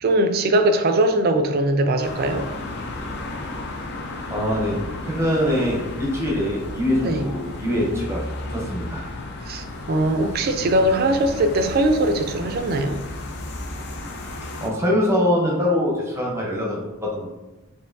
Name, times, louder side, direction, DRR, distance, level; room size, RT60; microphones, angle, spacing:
voice 1, 0.0-2.5 7.0-7.3 9.5-13.0, right 1 dB, 45° right, 7 dB, 0.3 m, -21 dB
sound 1, 2.0-14.7, left 2 dB, 55° left, 0.5 m, -33 dB
voice 2, 4.3-4.8 5.1-8.2 8.5-9.1 14.6-17.3, left 1 dB, 15° right, -2 dB, 0.7 m, -23 dB
4.5 x 2.6 x 2.6 m, 1.0 s
head